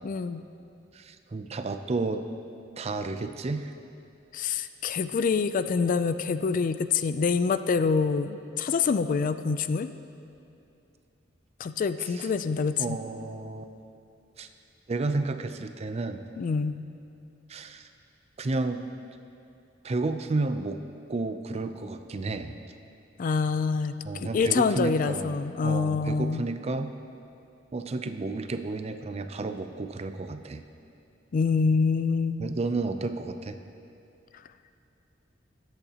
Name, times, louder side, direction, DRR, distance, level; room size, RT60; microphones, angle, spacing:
voice 1, 0.0-0.4 4.3-9.9 11.6-13.0 16.4-16.8 23.2-26.4 31.3-32.5, left 5 dB, 45° left, 11 dB, 0.3 m, -26 dB
voice 2, 0.9-2.2 2.8-3.7 12.0-12.3 12.8-13.7 14.4-14.5 14.9-16.2 17.5-17.9 18.4-18.8 19.8-20.8 21.1-22.5 24.0-25.3 25.6-26.9 27.7-30.6 32.4-33.6, right 3 dB, 35° right, 8 dB, 0.5 m, -31 dB
20.0 x 8.1 x 2.9 m, 2.7 s
head